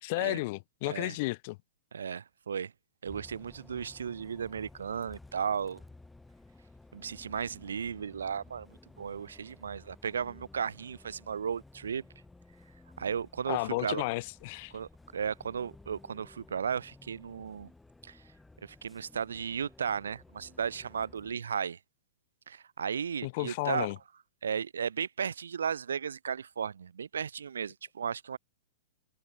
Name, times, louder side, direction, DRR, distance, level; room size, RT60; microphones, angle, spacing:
voice 1, 0.0-1.6 13.5-14.7 23.2-24.0, left 23 dB, 45° left, 0.8 m, -33 dB
voice 2, 1.9-2.7 3.0-5.8 6.9-8.7 9.0-12.0 13.0-14.0 14.7-17.7 18.0-18.2 18.6-21.8 22.5-23.9 24.4-28.4, right 7 dB, 85° right, 0.8 m, -35 dB
Bus, 3.1-21.3, left 2 dB, 5° left, 5.2 m, -55 dB
hypercardioid pair, 135°, 0 cm